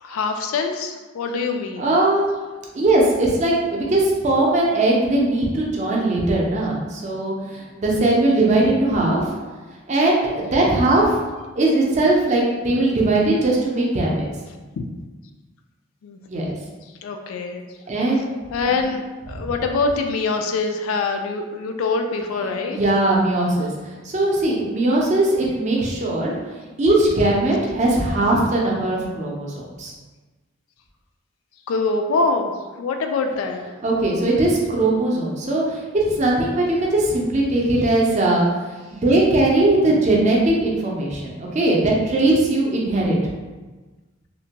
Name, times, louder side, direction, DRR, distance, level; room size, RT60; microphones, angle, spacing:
voice 1, 0.0-1.9 14.8-14.9 16.0-16.5 17.0-17.6 18.5-22.8 31.7-33.6, left 3 dB, 90° left, 5 dB, 0.3 m, -24 dB
voice 2, 1.8-2.3 2.7-9.3 9.9-11.1 11.5-14.3 16.3-16.5 17.9-18.2 18.6-18.9 19.3-19.5 22.7-26.3 26.8-29.9 33.8-43.2, right 2 dB, 35° right, -3 dB, 0.5 m, -20 dB
2.8 x 2.1 x 2.8 m, 1.3 s
head